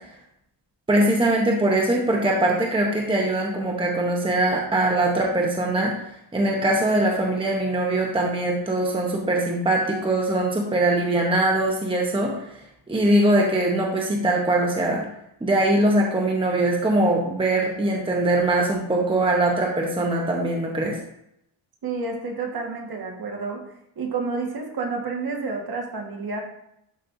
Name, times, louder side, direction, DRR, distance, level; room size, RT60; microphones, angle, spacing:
voice 1, 0.9-5.9 6.3-12.6 12.9-15.0 15.4-21.0, right 1 dB, 10° right, -1 dB, 0.9 m, -22 dB
voice 2, 21.8-23.6 24.0-26.4, right 4 dB, 45° right, 0 dB, 1.6 m, -29 dB
11.5 x 5.3 x 2.7 m, 0.77 s
wide cardioid pair, 150°, 48 cm